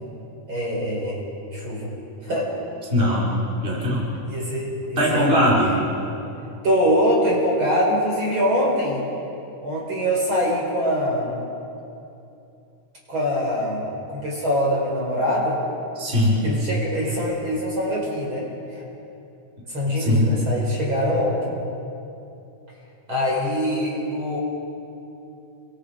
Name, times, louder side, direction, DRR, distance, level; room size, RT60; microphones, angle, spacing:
voice 1, 0.5-1.2 1.5-1.9 2.2-2.5 3.7-3.8 4.3-5.4 6.6-9.0 9.6-11.3 13.1-15.6 16.4-18.5 18.7-18.8 19.7-21.4 23.1-24.4, equal, 40° right, -3 dB, 5.7 m, -23 dB
voice 2, 2.9-3.3 3.6-4.0 5.0-5.7 15.9-16.4 19.9-20.4, equal, 15° right, -6 dB, 5.0 m, -20 dB
29.5 x 25.0 x 5.2 m, 2.8 s
omnidirectional pair, 3.6 m